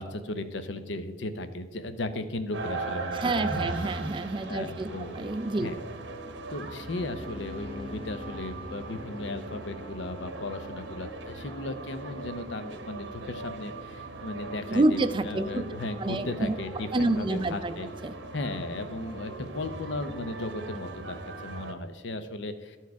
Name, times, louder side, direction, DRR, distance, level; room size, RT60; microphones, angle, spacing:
voice 1, 0.0-3.7 4.5-5.3 5.6-5.8 6.5-17.9 18.3-22.8, left 2 dB, 75° left, 10 dB, 0.7 m, -36 dB
sound 1, 2.5-21.7, right 3 dB, 75° right, 1.0 m, -39 dB
voice 2, 3.1-5.7 14.7-15.6 16.0-16.5 16.9-17.7 18.0-18.1, right 2 dB, 25° right, 11 dB, 0.4 m, -28 dB
sound 2, 3.2-12.0, left 2 dB, 30° left, 0.7 m, -48 dB
13.0 x 4.5 x 4.7 m, 1.3 s
head